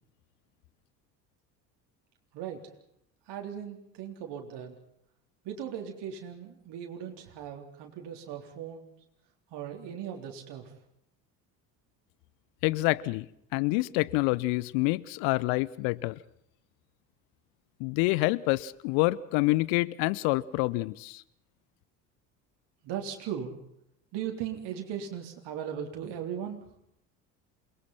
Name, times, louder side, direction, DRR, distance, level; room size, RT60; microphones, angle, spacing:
voice 1, 3.3-4.8 5.4-8.9 9.5-10.7 22.8-23.6 24.1-26.6, right 9 dB, 55° right, 2 dB, 3.8 m, -38 dB
voice 2, 12.6-13.3 13.5-16.2 17.8-21.2, left 21 dB, 60° left, 20 dB, 1.0 m, -27 dB
28.5 x 20.0 x 5.7 m, 0.73 s
hypercardioid pair, 65°, 49 cm